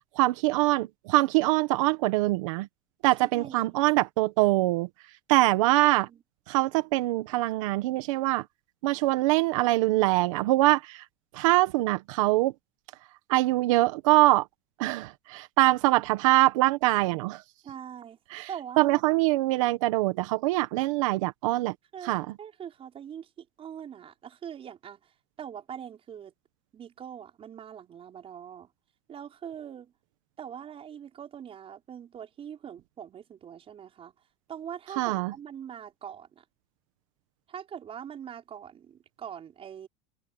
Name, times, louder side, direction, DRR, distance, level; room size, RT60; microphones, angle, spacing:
voice 1, 0.1-2.7 3.0-6.1 6.5-8.5 8.8-11.1 11.3-12.5 13.3-14.5 14.8-17.4 18.3-18.5 18.8-21.7 22.0-22.3 35.0-35.3, right 19 dB, 90° right, 1.4 m, -24 dB
voice 2, 3.2-3.6 5.7-6.2 17.6-18.2 18.5-19.0 21.9-22.1 22.4-25.1 25.4-26.3 26.7-28.7 29.1-29.9 30.4-34.1 34.5-36.4 37.5-39.9, right 9 dB, 35° right, 5.5 m, -42 dB
supercardioid pair, 120°, 16 cm